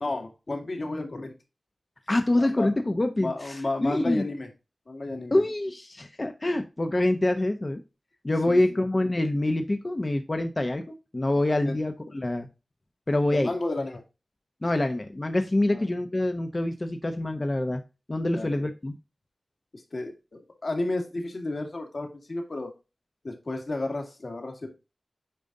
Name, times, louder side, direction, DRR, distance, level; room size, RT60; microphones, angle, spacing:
voice 1, 0.0-1.3 2.3-2.7 3.2-4.5 4.9-5.4 8.5-8.8 11.6-11.7 13.3-14.0 15.7-15.8 18.3-18.5 19.7-22.7 23.2-24.7, left 2 dB, 60° left, 2 dB, 2.2 m, -32 dB
voice 2, 2.1-4.2 5.3-7.8 8.2-12.5 13.1-13.5 14.6-17.8 18.1-18.9, left 1 dB, 35° left, 6 dB, 0.9 m, -26 dB
8.9 x 5.1 x 2.7 m, 0.27 s
wide cardioid pair, 75°, 0 cm